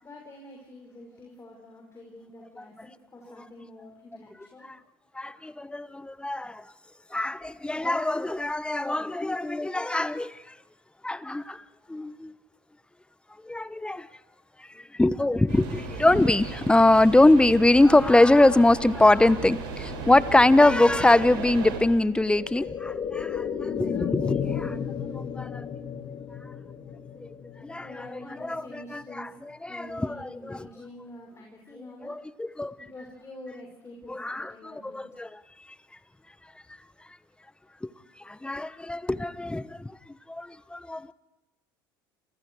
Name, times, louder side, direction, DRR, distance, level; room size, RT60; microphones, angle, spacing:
voice 1, 0.0-4.7 27.7-29.3 29.7-32.2 32.8-35.0, left 1 dB, 25° left, 5.7 m, -46 dB
voice 2, 5.2-6.6 7.1-10.3 11.0-11.6 11.9-12.3 13.4-14.1 15.0-23.4 23.8-24.8 25.1-25.7 27.6-28.1 28.4-29.3 29.6-30.6 32.0-32.8 34.1-35.3 37.8-37.9 38.3-39.9 40.3-41.1, left 2 dB, 10° left, 1.0 m, -23 dB
sound 1, 15.5-21.8, right 4 dB, 75° right, 6.7 m, -36 dB
sound 2, 19.6-29.2 29.5-29.6, left 7 dB, 40° left, 2.7 m, -34 dB
29.0 x 27.5 x 4.8 m
hypercardioid pair, 80°, 12 cm